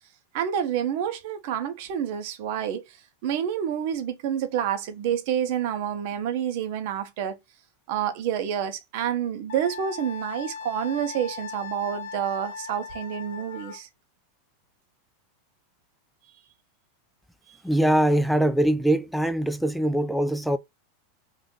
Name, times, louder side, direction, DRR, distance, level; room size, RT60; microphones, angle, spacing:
voice 1, 0.3-2.8 3.2-7.4 7.9-13.9 17.5-17.6, right 9 dB, 60° right, 0.7 m, -28 dB
Wind instrument woodwind instrument, 9.5-13.8, left 6 dB, 80° left, 0.8 m, -38 dB
voice 2, 17.6-20.6, right 1 dB, ahead, 0.4 m, -22 dB
2.6 x 2.4 x 3.6 m
hypercardioid pair, 115°, 0 cm